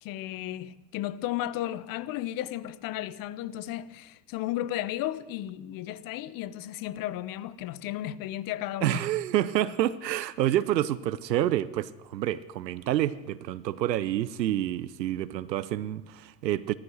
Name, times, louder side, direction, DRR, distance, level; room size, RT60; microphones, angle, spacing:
voice 1, 0.0-9.0 11.4-11.5, left 13 dB, 45° left, 1.0 m, -34 dB
voice 2, 8.8-16.7, right 12 dB, 85° right, 0.8 m, -28 dB
16.0 x 14.0 x 6.3 m
hypercardioid pair, 85°, 49 cm